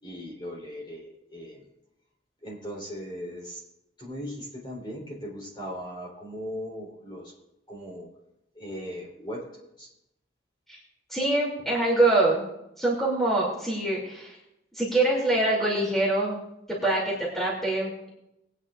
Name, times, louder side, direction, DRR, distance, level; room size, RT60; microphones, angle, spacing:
voice 1, 0.0-1.6 2.4-3.6 4.0-7.3 7.7-8.1 8.5-9.9, equal, 25° left, -4 dB, 3.3 m, -38 dB
voice 2, 11.1-12.4 12.8-14.4 14.7-16.4 16.7-18.1, right 2 dB, ahead, -5 dB, 2.6 m, -24 dB
20.5 x 9.3 x 2.4 m, 0.86 s
head